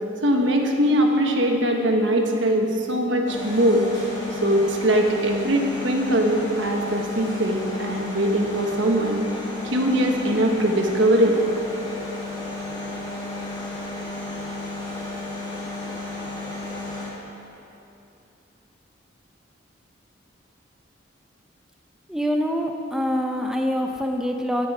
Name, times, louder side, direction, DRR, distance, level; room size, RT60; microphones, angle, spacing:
voice 1, 0.2-3.8 4.3-9.2 9.6-11.4, right 1 dB, 70° right, 2 dB, 1.3 m, -21 dB
sound 1, 3.3-17.1, left 3 dB, 25° left, 2.3 m, -33 dB
voice 2, 22.1-24.7, equal, 5° right, 2 dB, 0.6 m, -25 dB
15.0 x 8.6 x 4.9 m, 2.8 s
head